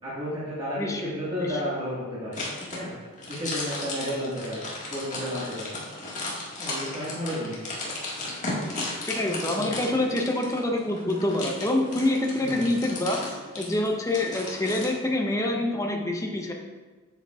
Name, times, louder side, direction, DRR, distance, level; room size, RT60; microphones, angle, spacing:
voice 1, 0.0-2.4 2.7-2.9 3.3-4.6 4.9-5.7 6.6-7.6 9.6-9.7 12.4-12.6, equal, 25° right, -10 dB, 1.8 m, -32 dB
voice 2, 0.8-1.6 9.1-13.2 13.6-16.5, left 1 dB, 15° left, 1 dB, 0.7 m, -26 dB
sound 1, 2.3-14.9, left 2 dB, 35° left, 1.7 m, -35 dB
8.4 x 7.5 x 2.4 m, 1.3 s
head